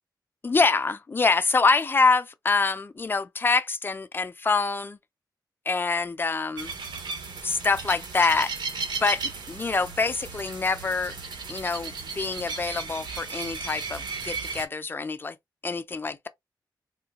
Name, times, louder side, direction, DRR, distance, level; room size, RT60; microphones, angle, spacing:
voice 1, 0.4-5.0 5.7-6.7 7.4-8.5 9.0-11.1 11.5-15.4 15.6-16.3, left 4 dB, 30° left, 0.4 m, -25 dB
sound 1, 6.6-14.7, right 4 dB, 80° right, 0.9 m, -35 dB
3.6 x 2.2 x 2.8 m
wide cardioid pair, 140°, 8 cm